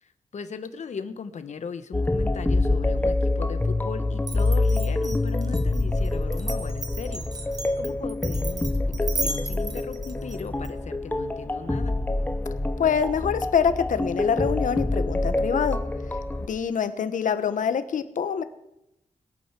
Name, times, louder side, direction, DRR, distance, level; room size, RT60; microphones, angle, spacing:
voice 1, 0.0-11.9, left 5 dB, 65° left, 11 dB, 1.1 m, -38 dB
sound 1, 1.9-16.5, left 2 dB, 15° left, 0.8 m, -26 dB
Glass, 4.2-10.7, right 3 dB, 30° right, 1.2 m, -35 dB
voice 2, 12.8-15.8 16.5-18.4, left 7 dB, 85° left, 11 dB, 1.0 m, -25 dB
21.0 x 8.9 x 6.0 m, 0.86 s
wide cardioid pair, 150°, 13 cm